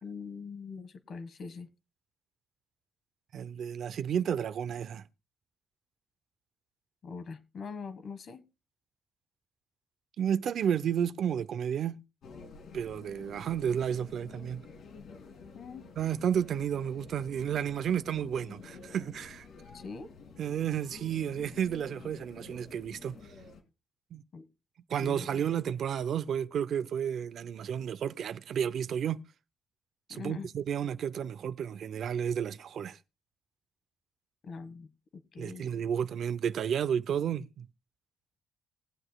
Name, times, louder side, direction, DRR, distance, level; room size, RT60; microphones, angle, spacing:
voice 1, 0.0-1.7 7.0-8.5 15.5-15.8 19.7-20.1 24.3-24.5 25.0-25.4 30.1-30.5 34.4-35.7, left 5 dB, 55° left, 1.3 m, -43 dB
voice 2, 3.3-5.1 10.2-12.0 12.7-14.6 16.0-19.4 20.4-23.2 24.1-24.2 24.9-29.2 30.1-33.0 35.4-37.7, right 8 dB, 65° right, 0.5 m, -32 dB
sound 1, 12.2-23.6, left 4 dB, 70° left, 2.3 m, -50 dB
21.0 x 7.7 x 2.3 m
cardioid pair, 90°, 0 cm